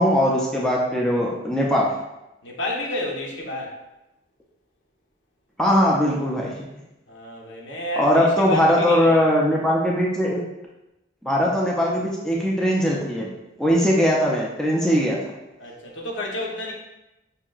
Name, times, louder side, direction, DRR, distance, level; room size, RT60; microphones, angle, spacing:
voice 1, 0.0-1.9 5.6-6.5 8.0-10.4 11.2-13.3 13.6-15.2, equal, 5° left, -4 dB, 0.4 m, -20 dB
voice 2, 2.4-3.7 7.1-9.2 15.6-16.7, left 1 dB, 80° left, -2 dB, 0.9 m, -30 dB
5.1 x 2.8 x 2.4 m, 0.94 s
head